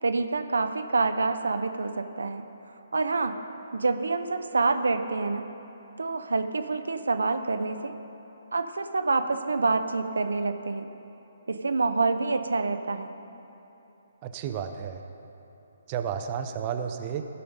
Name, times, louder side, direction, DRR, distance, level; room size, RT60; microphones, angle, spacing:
voice 1, 0.0-2.4 2.9-3.4 3.7-5.4 6.0-7.9 8.5-10.9 11.5-13.1, right 3 dB, 75° right, 8 dB, 0.6 m, -27 dB
voice 2, 14.2-15.0 15.9-17.3, right 8 dB, 30° right, 7 dB, 0.5 m, -32 dB
15.5 x 5.6 x 5.3 m, 3.0 s
figure-of-eight pair, 140°, 0 cm